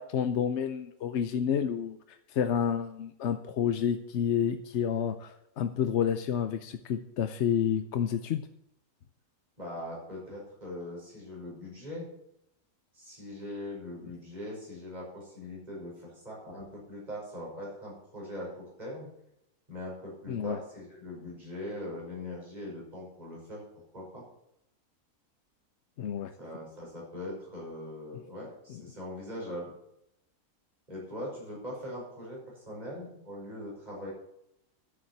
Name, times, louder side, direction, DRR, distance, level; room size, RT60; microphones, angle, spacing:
voice 1, 0.0-8.5 20.3-20.6 26.0-26.3 28.7-28.8, left 8 dB, 60° left, 9 dB, 0.8 m, -30 dB
voice 2, 9.6-12.1 12.9-19.1 19.7-23.6 23.9-24.2 26.4-29.7 30.9-34.1, left 1 dB, 25° right, -4 dB, 6.0 m, -41 dB
11.0 x 7.3 x 7.6 m, 0.79 s
omnidirectional pair, 1.6 m